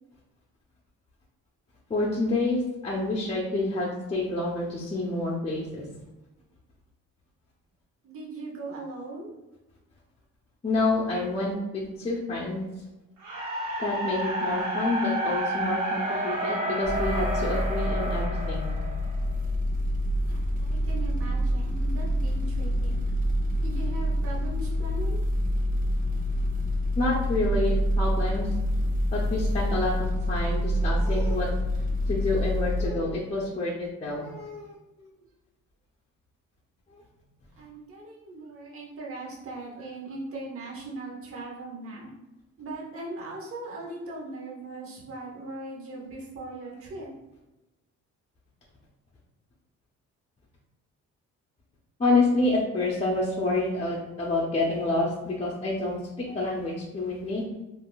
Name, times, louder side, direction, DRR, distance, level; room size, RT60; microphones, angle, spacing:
voice 1, 1.9-5.8 10.6-12.6 13.8-18.7 27.0-28.5 29.1-29.9 30.3-31.5 32.1-34.8 52.0-57.4, left 2 dB, 20° left, -4 dB, 0.6 m, -28 dB
voice 2, 8.0-9.3 20.3-23.0 23.6-25.2 37.6-42.1 42.6-47.1, right 2 dB, 45° right, -3 dB, 0.9 m, -39 dB
sound 1, 13.2-19.4, right 1 dB, 75° right, 0.9 m, -30 dB
sound 2, 16.8-32.9, equal, 30° right, 0.5 m, -27 dB
3.5 x 2.5 x 2.3 m, 1.0 s
cardioid pair, 90°, 30 cm